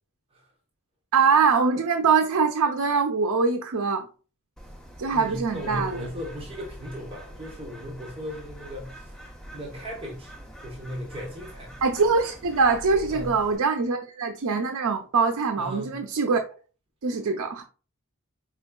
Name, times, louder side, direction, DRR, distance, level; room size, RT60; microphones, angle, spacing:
voice 1, 1.1-4.1 5.0-6.0 11.8-16.4 17.0-17.6, right 5 dB, 90° right, 0.5 m, -23 dB
Bird, 4.6-13.6, equal, ahead, 0.9 m, -44 dB
voice 2, 5.1-9.2 9.5-10.3 10.6-11.7 13.1-13.4 15.6-16.0, equal, 25° right, 0.8 m, -37 dB
4.5 x 4.4 x 2.2 m
head